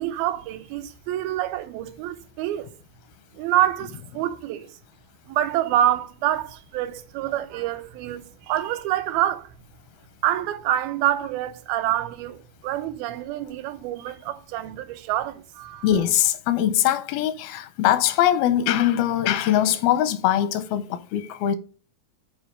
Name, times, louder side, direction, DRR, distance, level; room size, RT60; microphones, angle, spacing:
voice 1, 0.0-2.7 3.4-4.7 5.3-9.5 10.2-15.9, right 12 dB, 90° right, 2.5 m, -26 dB
voice 2, 15.8-21.6, left 11 dB, 85° left, 2.5 m, -22 dB
8.3 x 4.4 x 5.0 m
omnidirectional pair, 4.3 m